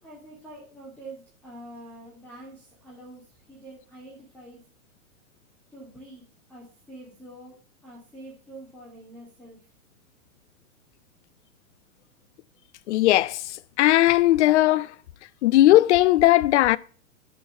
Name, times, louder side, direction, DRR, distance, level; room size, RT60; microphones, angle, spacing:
voice 1, 0.0-3.2 3.5-4.6 5.7-7.6 7.8-9.6, right 1 dB, 5° left, 2.4 m, -45 dB
voice 2, 12.9-13.4 13.8-14.9 15.4-16.8, left 15 dB, 50° left, 0.4 m, -18 dB
7.3 x 4.6 x 7.0 m
hypercardioid pair, 120°, 44 cm